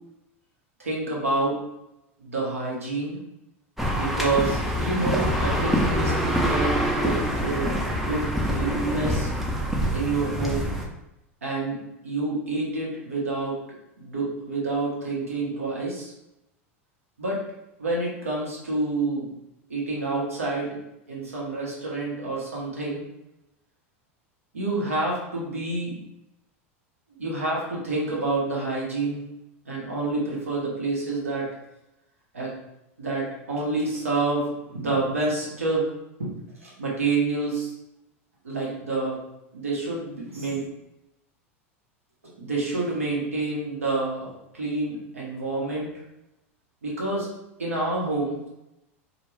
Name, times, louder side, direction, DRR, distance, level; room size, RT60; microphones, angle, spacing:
voice 1, 0.8-1.6 2.2-3.2 3.9-7.2 7.4-9.3 9.9-10.7 11.4-11.8 12.0-13.6 14.0-16.1 17.2-17.4 17.8-19.3 19.7-20.7 21.1-23.0 24.5-25.9 27.1-29.2 29.7-31.5 32.3-32.5 33.0-35.9 36.2-36.3 36.6-37.7 38.4-39.2 39.5-40.6 42.3-45.9 46.8-47.3 47.6-48.5, right 3 dB, 90° right, -4 dB, 0.8 m, -28 dB
sound 1, 3.8-10.8, equal, ahead, 0.5 m, -25 dB
2.1 x 2.1 x 3.0 m, 0.89 s
hypercardioid pair, 90°, 7 cm